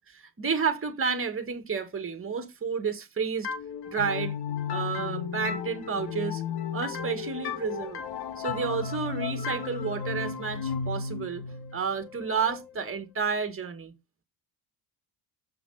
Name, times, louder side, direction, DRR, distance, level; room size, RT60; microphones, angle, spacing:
voice 1, 0.1-3.5 3.9-4.4 4.7-6.4 6.7-8.0 8.4-11.4 11.7-13.9, right 5 dB, 30° right, 2.0 m, -31 dB
sound 1, 3.4-13.0, left 6 dB, 55° left, 1.6 m, -34 dB
7.3 x 5.9 x 4.2 m
supercardioid pair, 80°, 47 cm